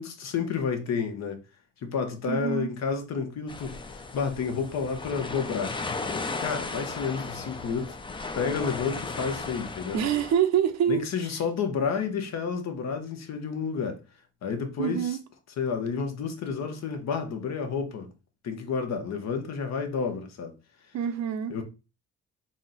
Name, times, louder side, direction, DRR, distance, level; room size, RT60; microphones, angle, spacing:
voice 1, 0.0-1.4 1.8-3.8 4.1-5.8 6.4-8.0 8.3-10.0 10.9-14.0 14.4-15.2 15.6-18.1 18.4-20.5 21.5-21.6, left 5 dB, 60° left, 0.9 m, -30 dB
voice 2, 2.3-2.7 9.9-11.1 14.8-15.2 20.9-21.5, right 9 dB, 60° right, 0.6 m, -26 dB
sound 1, 3.5-10.4, left 3 dB, 15° left, 0.4 m, -35 dB
4.1 x 2.1 x 3.8 m
cardioid pair, 90°, 30 cm